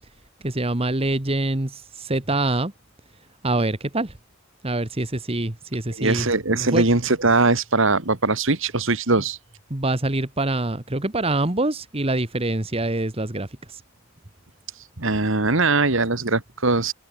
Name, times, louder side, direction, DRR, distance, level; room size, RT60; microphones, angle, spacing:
voice 1, 0.4-2.7 3.4-4.1 4.6-6.8 9.7-13.8, right 2 dB, 25° right, 1.4 m, -25 dB
voice 2, 6.0-9.4 14.7-16.9, right 3 dB, 60° right, 2.1 m, -21 dB
head